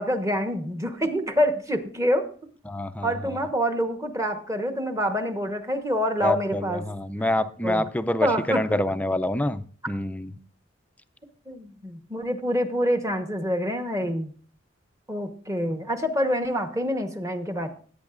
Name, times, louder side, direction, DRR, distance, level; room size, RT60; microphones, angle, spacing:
voice 1, 0.0-2.3 3.0-6.8 7.6-7.8 8.2-8.6 11.5-14.3 15.1-17.7, equal, 15° right, 1.1 m, -26 dB
voice 2, 2.7-3.4 6.2-10.4, left 1 dB, 10° left, 0.4 m, -27 dB
16.5 x 8.8 x 2.5 m
head